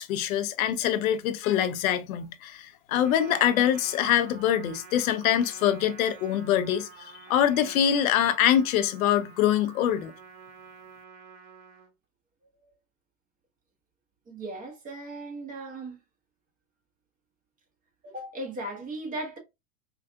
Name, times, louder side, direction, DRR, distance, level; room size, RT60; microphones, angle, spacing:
voice 1, 0.0-10.1, left 10 dB, 75° left, 0.7 m, -24 dB
Trumpet, 2.9-11.9, right 5 dB, 45° right, 1.3 m, -49 dB
voice 2, 14.3-16.0 18.0-19.4, right 1 dB, 20° right, 1.1 m, -37 dB
4.6 x 2.4 x 2.3 m
supercardioid pair, 135°, 42 cm